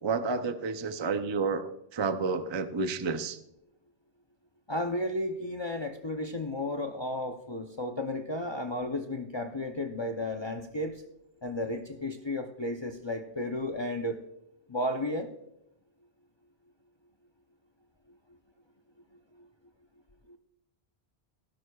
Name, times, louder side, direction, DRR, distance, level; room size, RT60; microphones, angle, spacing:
voice 1, 0.0-3.4, right 4 dB, 35° right, 9 dB, 0.5 m, -30 dB
voice 2, 4.7-11.0 11.4-14.2 14.7-15.3 19.4-19.5 20.3-20.4, left 1 dB, 30° left, 4 dB, 0.6 m, -33 dB
17.5 x 11.0 x 2.3 m, 0.81 s
omnidirectional pair, 1.1 m